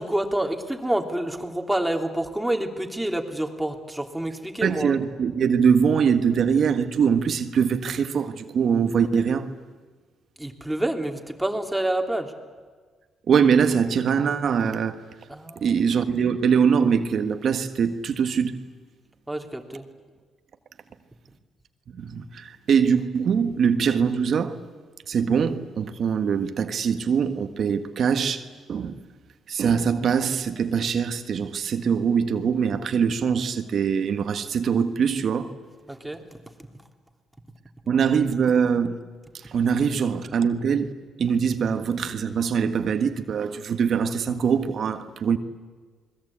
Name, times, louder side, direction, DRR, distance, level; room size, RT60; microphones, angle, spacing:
voice 1, 0.0-4.9 10.4-12.3 15.3-15.8 19.3-19.8 35.9-36.2, right 1 dB, 5° right, 3.1 m, -28 dB
voice 2, 4.6-9.6 13.3-15.0 15.5-18.6 22.0-24.6 25.1-29.0 29.5-35.5 37.9-39.0 39.4-40.9 41.2-45.4, right 6 dB, 60° right, 1.6 m, -23 dB
28.5 x 21.0 x 8.8 m
cardioid pair, 90°, 0 cm